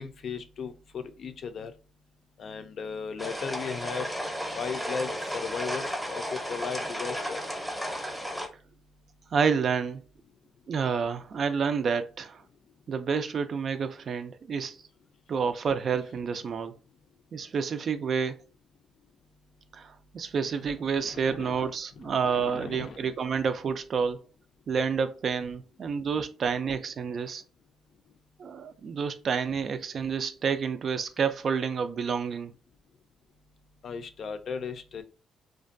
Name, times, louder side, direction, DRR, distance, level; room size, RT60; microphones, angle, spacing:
voice 1, 0.0-1.7 2.4-4.1 4.6-7.4 21.0-23.1 33.8-35.0, left 6 dB, 60° left, 0.4 m, -36 dB
sound 1, 3.2-8.5, equal, ahead, 0.7 m, -34 dB
voice 2, 9.3-10.0 10.7-12.4 12.9-14.8 15.3-16.8 17.3-18.4 19.7-24.2 24.7-27.4 28.4-32.5, right 6 dB, 55° right, 0.3 m, -29 dB
2.5 x 2.2 x 2.5 m
cardioid pair, 90°, 0 cm